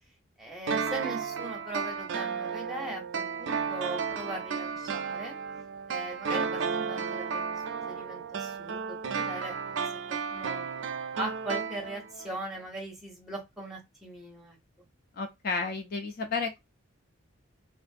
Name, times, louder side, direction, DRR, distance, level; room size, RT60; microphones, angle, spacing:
voice 1, 0.4-5.4 5.9-9.8 10.1-10.7 11.1-14.6, right 1 dB, ahead, 0.7 m, -40 dB
sound 1, 0.7-12.3 12.6-12.7, right 5 dB, 55° right, 0.3 m, -33 dB
voice 2, 15.1-16.6, left 4 dB, 45° left, 0.3 m, -32 dB
2.4 x 2.2 x 2.5 m
head